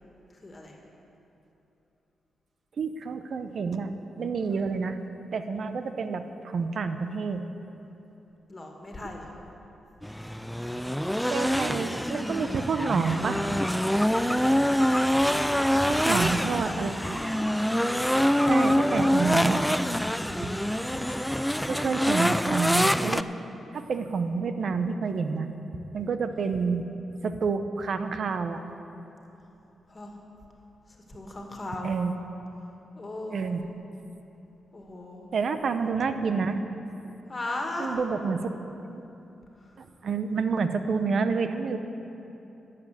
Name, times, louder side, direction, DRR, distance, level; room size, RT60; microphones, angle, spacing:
voice 1, 0.3-0.8 4.4-4.6 8.5-9.3 14.5-16.8 20.3-20.6 26.3-26.6 29.9-30.2 30.9-31.9 32.9-33.6 34.7-35.3 37.3-38.0 39.6-39.8, left 2 dB, 35° left, 1 dB, 2.2 m, -39 dB
voice 2, 2.8-3.9 4.2-5.0 5.3-7.4 11.3-13.6 16.0-16.9 18.5-19.7 20.4-20.5 21.7-23.2 23.7-25.5 25.9-26.8 27.2-28.6 31.8-32.1 33.3-33.6 35.3-36.6 37.8-38.5 38.9-39.0 39.8-41.8, right 5 dB, 60° right, 9 dB, 0.7 m, -28 dB
sound 1, 10.0-23.2, equal, 5° left, 0.4 m, -25 dB
11.5 x 7.6 x 7.9 m, 3.0 s
cardioid pair, 70°, 0 cm